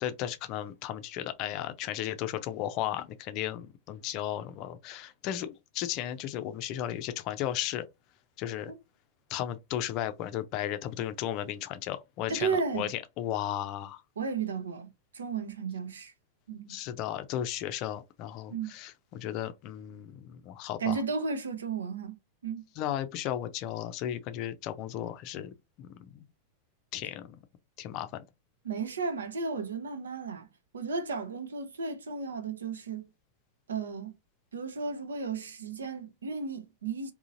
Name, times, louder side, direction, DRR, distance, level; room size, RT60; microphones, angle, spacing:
voice 1, 0.0-7.8 8.4-8.7 9.3-14.0 16.7-21.0 22.8-26.3 26.9-27.4 27.8-28.2, left 12 dB, 40° left, 0.5 m, -35 dB
voice 2, 12.3-12.9 14.2-16.1 16.5-16.8 18.5-18.7 20.8-22.2 22.4-22.7 28.6-30.5 30.7-33.1 33.7-34.1 34.5-37.1, right 5 dB, 70° right, 0.7 m, -34 dB
3.8 x 2.7 x 2.5 m
figure-of-eight pair, 90°, 0 cm